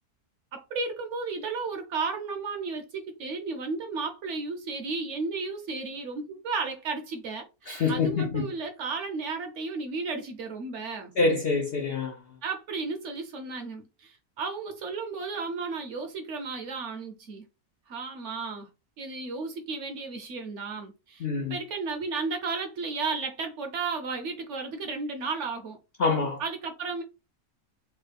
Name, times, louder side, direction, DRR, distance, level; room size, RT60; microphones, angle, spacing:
voice 1, 0.5-11.1 12.4-17.4 17.9-18.7 19.0-25.8 26.4-27.0, right 4 dB, 65° right, 0.8 m, -34 dB
voice 2, 7.7-8.4 11.2-12.1 21.2-21.5 26.0-26.4, left 4 dB, 80° left, 0.5 m, -26 dB
3.2 x 2.2 x 3.3 m
omnidirectional pair, 1.6 m